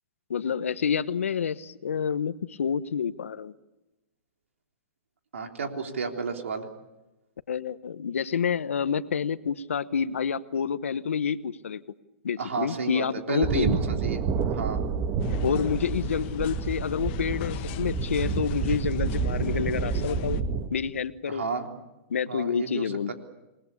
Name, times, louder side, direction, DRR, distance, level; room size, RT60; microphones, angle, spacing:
voice 1, 0.3-3.5 7.5-11.8 12.2-13.8 15.4-20.4 20.7-21.4 22.1-23.1, left 7 dB, 85° left, 14 dB, 1.1 m, -28 dB
voice 2, 5.3-6.7 12.4-14.2 14.5-14.8 21.3-21.7 22.3-23.1, right 5 dB, 85° right, 3 dB, 3.6 m, -32 dB
sound 1, 13.4-20.7, right 5 dB, 35° right, 2.4 m, -29 dB
sound 2, 15.2-20.4, left 15 dB, 50° left, 1.4 m, -39 dB
28.0 x 20.5 x 8.6 m, 1.0 s
hypercardioid pair, 115°, 7 cm